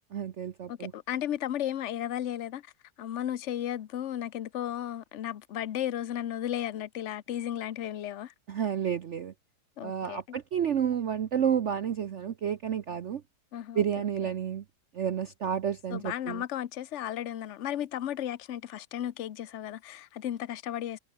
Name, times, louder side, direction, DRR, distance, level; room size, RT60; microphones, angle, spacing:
voice 1, 0.1-0.9 8.5-9.3 9.8-13.2 13.7-14.6 14.9-16.4, right 8 dB, 55° right, 0.9 m, -30 dB
voice 2, 0.7-2.6 3.0-8.3 9.8-10.4 13.5-14.0 15.9-21.0, left 11 dB, 55° left, 0.9 m, -34 dB
omnidirectional pair, 1.9 m